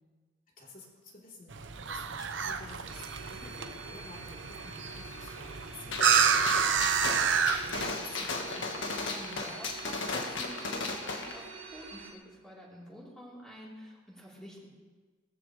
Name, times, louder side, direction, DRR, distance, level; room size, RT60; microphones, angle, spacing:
voice 1, 0.6-6.6 6.9-8.9, left 2 dB, 45° left, -3 dB, 3.8 m, -51 dB
sound 1, 1.5-7.9, right 7 dB, 70° right, 0.8 m, -29 dB
sound 2, 2.9-12.1, right 4 dB, 90° right, 2.6 m, -46 dB
Gunshot gunfire, 5.9-11.4, left 3 dB, 70° left, 1.7 m, -35 dB
voice 2, 9.1-14.7, equal, 5° left, -6 dB, 4.0 m, -48 dB
20.0 x 14.5 x 3.4 m, 1.4 s
head